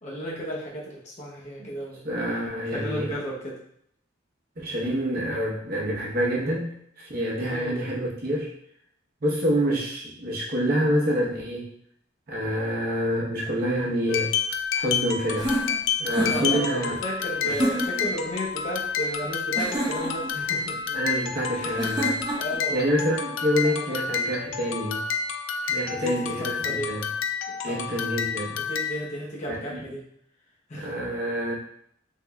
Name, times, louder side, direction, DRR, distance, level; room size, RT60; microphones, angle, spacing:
voice 1, 0.0-2.0 2.7-3.6 7.4-7.8 16.3-20.8 21.5-21.9 22.3-22.9 23.6-24.0 25.6-26.9 27.5-27.9 28.6-30.0 30.7-30.9, equal, 35° left, -4 dB, 0.6 m, -34 dB
voice 2, 2.0-3.1 4.6-8.5 9.2-11.7 12.3-14.3 14.7-15.5 16.0-16.9 17.4-17.5 20.9-22.2 22.7-25.0 25.7-27.1 27.6-28.6 30.7-31.5, equal, 50° right, -5 dB, 0.9 m, -27 dB
sound 1, 14.1-29.1, left 6 dB, 80° left, 0.3 m, -29 dB
sound 2, 15.3-16.6 17.5-18.1 19.6-20.3 21.8-22.6, right 1 dB, 20° right, 0.6 m, -28 dB
3.5 x 3.2 x 2.3 m, 0.70 s
head